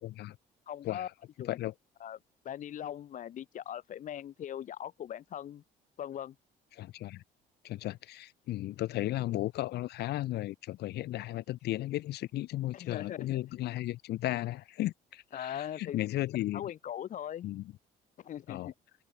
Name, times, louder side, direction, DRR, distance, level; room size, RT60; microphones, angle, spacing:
voice 1, 0.0-0.4 0.8-1.1 1.5-1.7 6.8-7.2 7.6-16.7 17.4-17.7 18.5-18.7, left 15 dB, 75° left, 3.5 m, -35 dB
voice 2, 0.7-1.1 1.4-1.6 2.0-2.2 2.4-5.6 6.0-6.3 12.7-13.4 15.3-16.0 16.5-17.5 18.2-18.7, left 10 dB, 50° left, 0.9 m, -40 dB
open air
cardioid pair, 110°, 17 cm